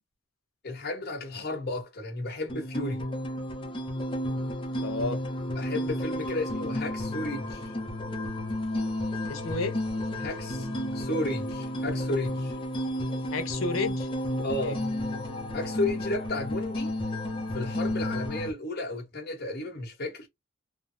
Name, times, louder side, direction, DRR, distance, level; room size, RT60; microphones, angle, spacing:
voice 1, 0.6-3.1 5.5-7.7 10.2-12.5 14.4-14.8 15.5-16.9 17.5-20.3, left 2 dB, 50° left, 1.3 m, -33 dB
sound 1, 2.5-18.5, left 1 dB, 25° left, 0.6 m, -32 dB
voice 2, 4.8-5.2 9.3-9.8 13.3-14.1 14.4-14.8, left 3 dB, 85° left, 0.8 m, -31 dB
3.3 x 2.1 x 2.5 m
head